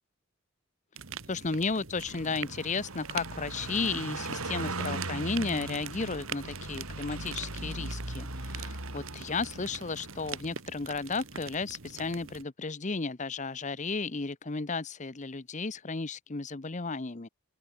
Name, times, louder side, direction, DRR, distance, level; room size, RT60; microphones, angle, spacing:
sound 1, 0.9-12.4, right 7 dB, 65° right, 1.7 m, -44 dB
voice 1, 1.3-17.3, left 4 dB, 35° left, 0.8 m, -34 dB
Car passing by, 2.0-10.4, right 2 dB, 85° right, 4.8 m, -39 dB
open air
head